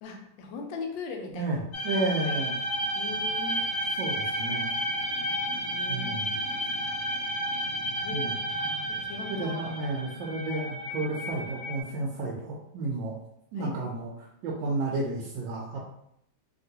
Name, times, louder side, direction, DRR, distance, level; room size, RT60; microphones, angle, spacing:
voice 1, 0.0-1.6 2.3-2.4 2.9-3.7 5.5-6.2 8.0-9.8 13.6-13.8, left 4 dB, 85° left, 3 dB, 1.3 m, -40 dB
voice 2, 1.3-2.5 4.0-4.8 5.9-6.4 8.1-8.4 9.3-13.2 13.5-15.8, right 2 dB, 80° right, -3 dB, 1.3 m, -32 dB
sound 1, 1.7-11.8, equal, 55° left, 0.8 m, -31 dB
3.0 x 2.9 x 2.7 m, 0.75 s
omnidirectional pair, 2.0 m